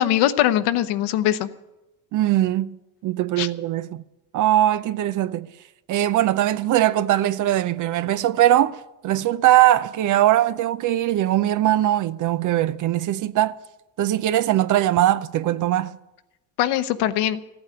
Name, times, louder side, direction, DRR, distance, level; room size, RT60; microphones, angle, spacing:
voice 1, 0.0-1.5 3.4-3.5 16.6-17.4, left 12 dB, 65° left, 1.0 m, -21 dB
voice 2, 2.1-2.8 3.0-4.0 4.3-5.5 5.9-13.6 14.0-15.9, right 13 dB, 45° right, 0.6 m, -20 dB
14.5 x 8.9 x 9.3 m
supercardioid pair, 100°, 42 cm